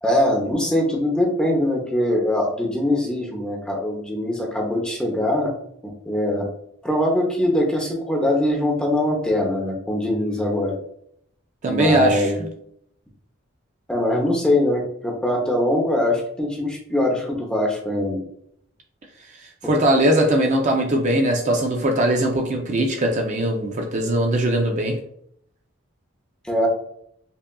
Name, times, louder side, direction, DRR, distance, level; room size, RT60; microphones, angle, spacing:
voice 1, 0.0-5.5 6.0-6.5 6.8-10.8 11.7-12.4 13.9-18.2 19.6-19.7 26.4-26.7, left 1 dB, 5° left, 0 dB, 0.7 m, -22 dB
voice 2, 11.6-12.3 19.6-25.0, right 1 dB, 35° right, 2 dB, 0.4 m, -20 dB
5.4 x 2.4 x 2.2 m, 0.70 s
head